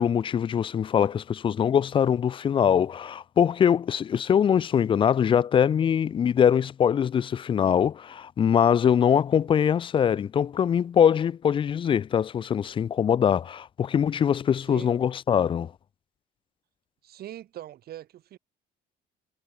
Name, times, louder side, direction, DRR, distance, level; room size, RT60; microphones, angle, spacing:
voice 1, 0.0-15.7, left 8 dB, 30° left, 0.4 m, -23 dB
voice 2, 17.0-18.4, right 12 dB, 65° right, 6.4 m, -41 dB
cardioid pair, 110°, 17 cm